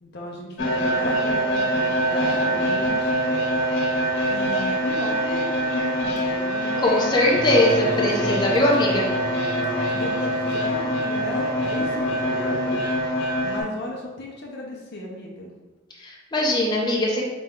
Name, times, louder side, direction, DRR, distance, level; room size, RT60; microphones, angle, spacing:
voice 1, 0.0-3.2 4.3-8.5 9.9-12.8 13.4-15.5, left 1 dB, 60° left, -1 dB, 0.6 m, -35 dB
sound 1, 0.6-13.6, right 1 dB, 85° left, 1.1 m, -24 dB
voice 2, 6.8-9.1 16.0-17.3, left 1 dB, 25° left, -3 dB, 0.8 m, -21 dB
sound 2, 7.3-12.9, right 1 dB, 5° right, 0.9 m, -32 dB
5.0 x 2.2 x 3.6 m, 1.2 s
head